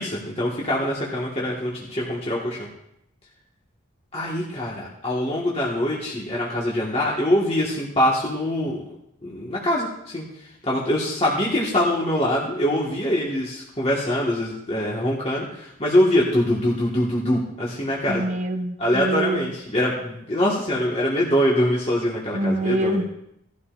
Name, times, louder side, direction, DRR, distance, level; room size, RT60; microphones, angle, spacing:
voice 1, 0.0-2.7 4.1-8.8 9.2-10.3 10.6-18.2 18.8-23.0, left 1 dB, 30° left, -4 dB, 1.6 m, -23 dB
voice 2, 18.1-19.5 22.3-23.0, right 1 dB, 35° right, 6 dB, 0.9 m, -25 dB
17.0 x 12.5 x 2.5 m, 0.78 s
head